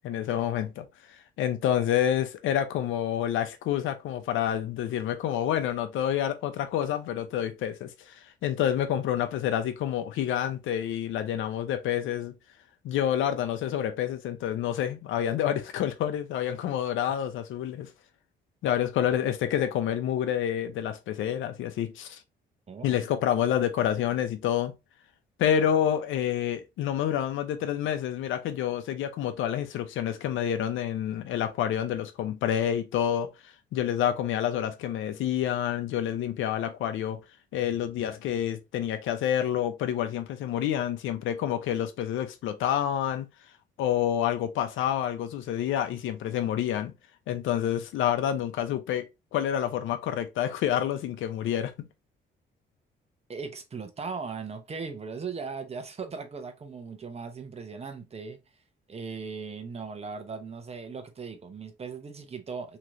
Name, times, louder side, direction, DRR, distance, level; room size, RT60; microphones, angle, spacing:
voice 1, 0.0-12.3 12.8-17.9 18.6-22.2 22.8-24.7 25.4-33.3 33.7-37.2 37.5-43.3 43.8-46.9 47.3-51.9, left 10 dB, 80° left, 0.6 m, -28 dB
voice 2, 22.7-23.0 53.3-58.4 58.9-62.8, right 5 dB, 30° right, 0.8 m, -38 dB
3.0 x 2.9 x 2.5 m
cardioid pair, 90°, 20 cm